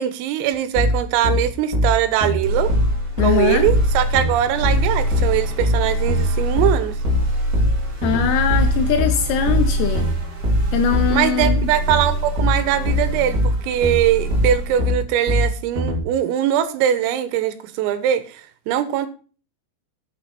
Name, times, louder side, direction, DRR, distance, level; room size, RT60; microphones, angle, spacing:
voice 1, 0.0-2.7 3.2-7.0 11.1-18.4 18.7-19.1, right 10 dB, 90° right, 3.7 m, -21 dB
sound 1, 0.7-16.0, left 1 dB, 25° right, 1.7 m, -21 dB
sound 2, 2.4-14.9, right 1 dB, 45° right, 4.0 m, -25 dB
voice 2, 3.2-3.7 8.0-10.1 10.7-11.7, left 7 dB, 75° left, 2.7 m, -21 dB
9.1 x 7.8 x 4.2 m
omnidirectional pair, 5.8 m